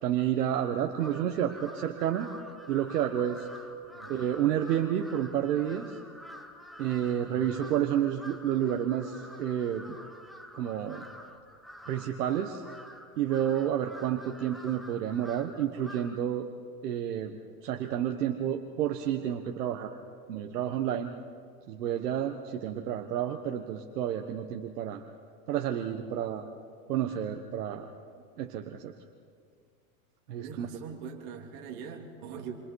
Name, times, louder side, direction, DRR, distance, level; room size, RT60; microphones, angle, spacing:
voice 1, 0.0-2.3 2.7-3.5 4.1-5.9 6.8-9.9 10.5-11.0 11.9-12.6 13.2-16.5 16.8-17.3 17.6-19.9 20.3-21.1 21.7-25.0 25.5-26.5 26.9-27.9 28.4-28.9 30.3-30.7, right 10 dB, 85° right, 4 dB, 1.4 m, -30 dB
Crow, 0.9-16.3, equal, ahead, 1.3 m, -48 dB
voice 2, 30.4-32.6, right 6 dB, 50° right, 2 dB, 3.6 m, -42 dB
28.5 x 24.0 x 4.8 m, 2.1 s
supercardioid pair, 135°, 45 cm